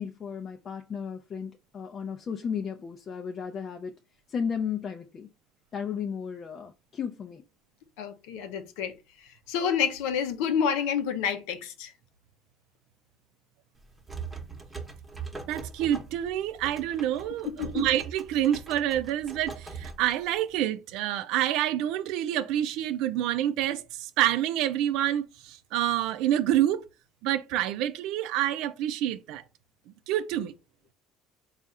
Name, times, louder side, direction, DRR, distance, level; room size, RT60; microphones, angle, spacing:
voice 1, 0.0-3.9 4.3-5.3 5.7-7.4, left 7 dB, 40° left, 0.5 m, -34 dB
voice 2, 8.0-8.9 9.5-11.9 17.6-17.9, left 7 dB, 85° left, 0.7 m, -28 dB
sound 1, 13.8-20.6, right 4 dB, 15° right, 1.0 m, -42 dB
voice 3, 15.5-26.8 27.2-29.4 30.1-30.5, right 12 dB, 75° right, 0.4 m, -27 dB
4.1 x 2.4 x 3.7 m
supercardioid pair, 95°, 0 cm